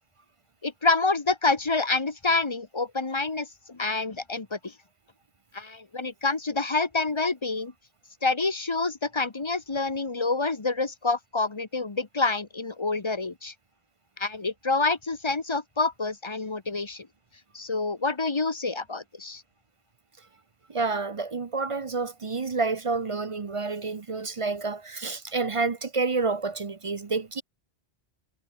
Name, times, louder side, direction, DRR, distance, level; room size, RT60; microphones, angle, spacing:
voice 1, 0.6-4.7 5.5-7.7 8.2-13.5 14.2-17.1 17.5-19.4, left 3 dB, 25° left, 1.2 m, -27 dB
voice 2, 20.7-27.4, right 4 dB, 35° right, 0.7 m, -29 dB
omnidirectional pair, 1.1 m